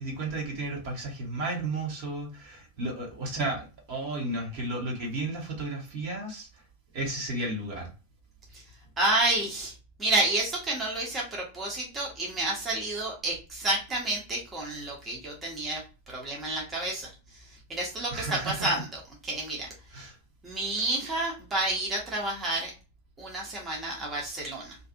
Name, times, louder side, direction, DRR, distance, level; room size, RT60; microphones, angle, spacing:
voice 1, 0.0-6.5 6.9-7.9 18.1-18.7 19.9-20.2, right 2 dB, 50° right, -1 dB, 1.1 m, -33 dB
voice 2, 9.0-9.7 10.0-15.8 16.1-19.7 20.4-22.7 23.2-24.8, right 2 dB, 20° right, -2 dB, 0.9 m, -30 dB
2.6 x 2.5 x 2.5 m, 0.33 s
figure-of-eight pair, 90°, 0 cm